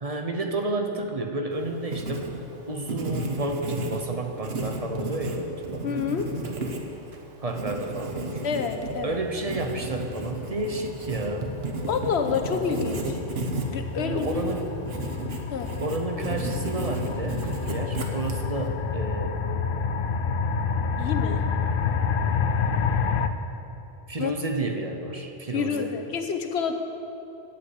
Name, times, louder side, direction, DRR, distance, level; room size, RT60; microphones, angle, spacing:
voice 1, 0.0-2.4 2.7-6.0 7.4-8.4 9.0-11.7 14.0-14.7 15.8-19.4 24.1-25.9, right 2 dB, 40° right, 4 dB, 0.8 m, -31 dB
Writing, 1.5-18.7, right 2 dB, 70° right, 1.2 m, -34 dB
voice 2, 5.8-6.3 8.4-9.2 11.9-13.2 13.7-14.4 15.5-15.7 21.0-21.4 24.2-24.3 25.5-26.7, left 6 dB, 85° left, 6 dB, 1.1 m, -28 dB
sound 1, 8.9-23.3, left 5 dB, 60° left, 0.7 m, -29 dB
8.7 x 8.3 x 8.0 m, 2.9 s
omnidirectional pair, 1.1 m